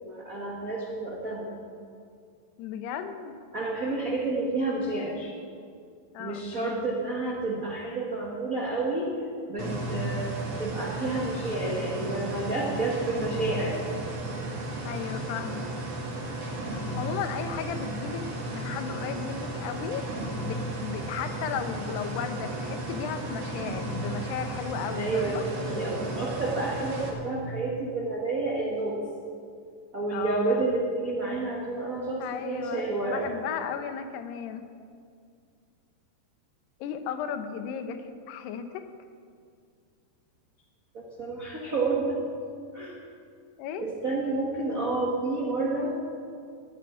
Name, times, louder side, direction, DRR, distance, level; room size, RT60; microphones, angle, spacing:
voice 1, 0.0-1.5 3.5-5.3 6.2-9.1 9.5-13.8 24.9-29.0 29.9-33.2 40.9-42.2 42.7-43.0 43.8-45.9, right 3 dB, 75° right, -3 dB, 0.7 m, -30 dB
voice 2, 2.6-3.3 6.1-7.0 14.9-15.7 16.7-18.2 18.5-25.5 30.1-30.7 32.2-34.6 36.8-38.8 43.6-43.8, left 7 dB, 80° left, 8 dB, 2.9 m, -35 dB
sound 1, 9.6-27.1, right 1 dB, 45° right, 2.8 m, -34 dB
14.0 x 8.6 x 9.8 m, 2.2 s
omnidirectional pair, 4.8 m